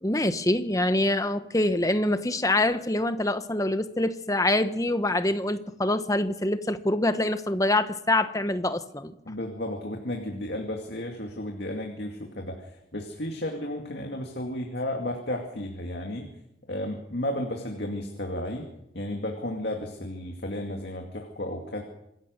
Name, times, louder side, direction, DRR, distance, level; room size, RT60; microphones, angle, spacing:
voice 1, 0.0-9.1, left 1 dB, 15° left, 10 dB, 1.0 m, -25 dB
voice 2, 9.3-16.3 16.7-18.7 18.9-21.8, left 1 dB, 60° left, 2 dB, 2.4 m, -33 dB
26.5 x 15.0 x 6.6 m, 0.82 s
head